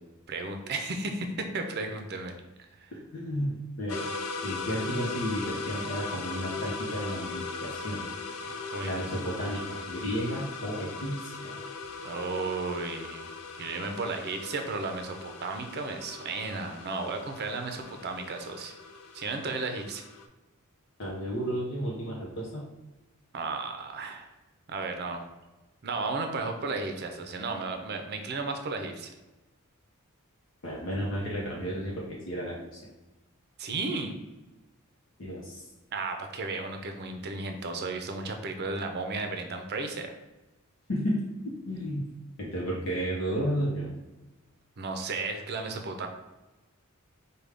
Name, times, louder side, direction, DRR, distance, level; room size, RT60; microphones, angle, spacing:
voice 1, 0.3-2.3 2.6-2.9 8.7-8.9 12.0-18.7 19.1-20.0 23.3-24.3 24.7-25.3 25.8-29.1 33.6-34.1 35.9-40.1 44.8-46.1, right 3 dB, 50° right, 5 dB, 0.5 m, -34 dB
voice 2, 2.9-4.0 4.4-8.1 8.8-11.5 21.0-22.6 30.6-32.8 35.2-35.7 40.9-42.0 42.4-43.9, equal, 65° left, -4 dB, 0.8 m, -32 dB
sound 1, 3.9-20.3, left 4 dB, 85° left, 0.5 m, -39 dB
5.0 x 2.2 x 3.3 m, 1.1 s
head